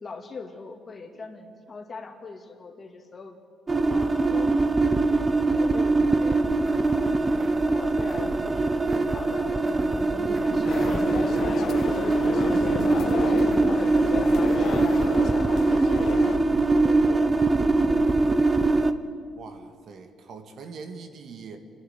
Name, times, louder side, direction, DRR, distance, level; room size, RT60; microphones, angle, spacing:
voice 1, 0.0-3.4 3.9-4.5 5.0-7.0 7.6-12.4 12.9-17.5 17.7-18.9, left 4 dB, 40° left, 4 dB, 2.4 m, -42 dB
sound 1, 3.7-18.9, right 3 dB, 25° right, 1.0 m, -22 dB
sound 2, 6.6-15.2, right 2 dB, 40° right, 3.8 m, -40 dB
sound 3, 10.6-16.4, left 9 dB, 65° left, 0.5 m, -33 dB
voice 2, 19.3-21.6, right 5 dB, 65° right, 6 dB, 2.0 m, -42 dB
26.0 x 11.0 x 9.5 m, 2.2 s
cardioid pair, 90°, 0 cm